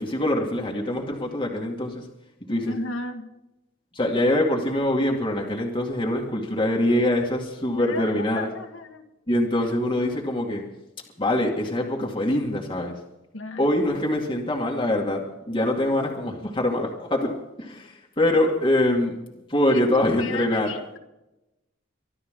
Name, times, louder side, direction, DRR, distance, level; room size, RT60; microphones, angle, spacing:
voice 1, 0.0-2.1 2.4-2.7 3.9-8.5 9.3-10.6 11.2-13.0 13.6-19.1 19.5-20.7, left 1 dB, 25° left, -1 dB, 2.3 m, -24 dB
voice 2, 2.7-3.3 7.8-9.0 9.6-9.7 13.3-13.6 19.7-19.8 20.2-21.0, left 2 dB, 90° left, 6 dB, 2.0 m, -35 dB
24.0 x 13.0 x 3.9 m, 0.94 s
head